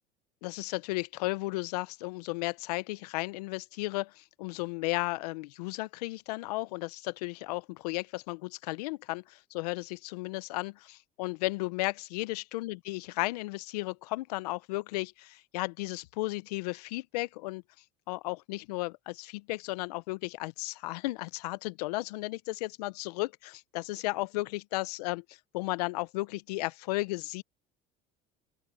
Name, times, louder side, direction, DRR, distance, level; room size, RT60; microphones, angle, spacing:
voice 1, 0.4-17.6 18.1-27.4, left 21 dB, 80° left, 0.8 m, -34 dB
open air
hypercardioid pair, 85°, 20 cm